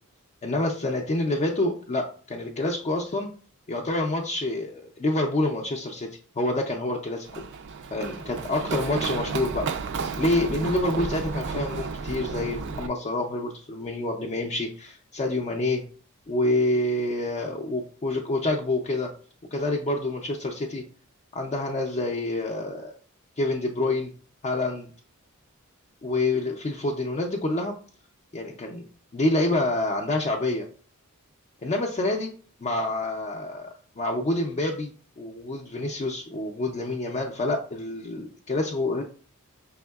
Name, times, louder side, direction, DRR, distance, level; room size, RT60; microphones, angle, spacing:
voice 1, 0.4-3.3 3.7-6.1 6.4-7.4 7.9-9.7 10.2-15.8 16.3-19.1 19.5-20.8 21.3-22.9 23.4-24.1 24.4-24.9 26.0-27.8 28.3-28.9 29.1-30.7 31.6-32.3 32.6-33.7 34.0-39.0, left 2 dB, 30° left, 0 dB, 0.4 m, -27 dB
Run, 7.3-12.9, right 4 dB, 55° right, 0.4 m, -32 dB
5.2 x 3.5 x 2.3 m, 0.42 s
head